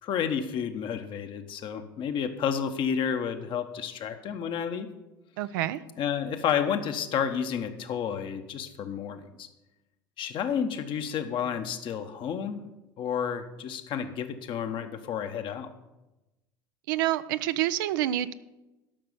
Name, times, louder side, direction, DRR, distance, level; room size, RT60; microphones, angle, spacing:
voice 1, 0.0-4.9 6.0-9.5 10.2-12.6 13.0-15.7, left 7 dB, 45° left, 7 dB, 1.1 m, -31 dB
voice 2, 5.4-5.8 16.9-18.3, right 14 dB, 70° right, 13 dB, 0.5 m, -27 dB
12.5 x 6.0 x 6.8 m, 1.0 s
hypercardioid pair, 75°, 11 cm